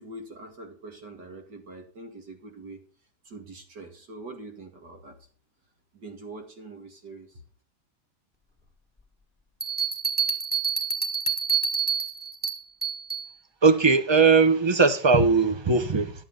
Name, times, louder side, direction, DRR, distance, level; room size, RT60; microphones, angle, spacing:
voice 1, 0.0-2.8 3.2-5.2 5.9-7.4, right 2 dB, 90° right, 3 dB, 2.7 m, -43 dB
sound 1, 9.6-13.3, right 6 dB, 5° right, 1.2 m, -27 dB
voice 2, 13.6-16.1, right 4 dB, 25° right, 10 dB, 0.6 m, -19 dB
12.0 x 7.0 x 5.4 m, 0.41 s
omnidirectional pair, 1.8 m